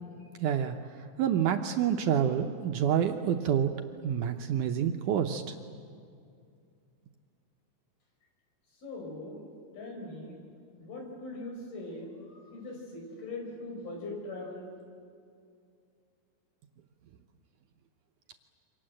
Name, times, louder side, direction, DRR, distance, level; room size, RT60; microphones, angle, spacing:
voice 1, 0.4-0.8 1.2-3.7 4.0-5.6, right 9 dB, 70° right, 5 dB, 2.0 m, -27 dB
voice 2, 8.8-9.4 9.7-10.4 10.8-14.7, left 2 dB, 75° left, 1 dB, 6.9 m, -41 dB
27.5 x 25.0 x 7.8 m, 2.4 s
omnidirectional pair, 4.4 m